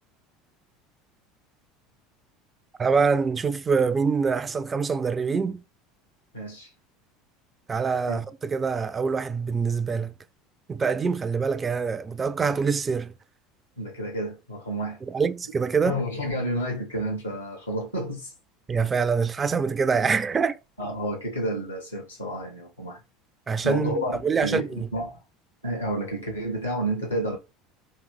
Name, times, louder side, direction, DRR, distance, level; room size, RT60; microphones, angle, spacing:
voice 1, 2.8-5.6 7.7-10.1 10.7-13.1 15.0-16.0 18.7-20.6 23.5-24.9, right 5 dB, 25° right, 0.3 m, -25 dB
voice 2, 6.3-6.7 8.1-8.2 13.8-15.0 15.8-18.3 20.8-23.0 23.6-25.2 25.6-27.4, right 1 dB, 85° left, 1.3 m, -30 dB
3.2 x 2.9 x 3.4 m
figure-of-eight pair, 70°, 0 cm